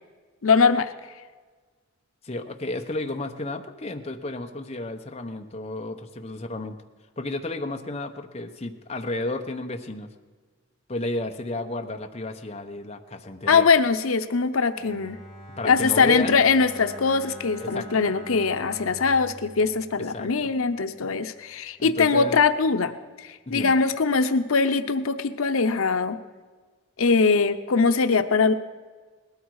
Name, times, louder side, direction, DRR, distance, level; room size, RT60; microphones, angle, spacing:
voice 1, 0.4-0.9 13.5-15.2 15.6-22.9 23.2-26.2 27.0-28.5, left 4 dB, 85° left, 9 dB, 0.7 m, -22 dB
voice 2, 2.2-6.8 7.2-10.1 10.9-13.7 15.6-16.4 17.6-18.0 20.1-20.5 21.8-22.4 23.5-23.8, left 2 dB, 30° left, 4 dB, 0.9 m, -32 dB
Bowed string instrument, 14.7-20.7, equal, ahead, 2.6 m, -44 dB
19.0 x 13.0 x 4.8 m, 1.4 s
head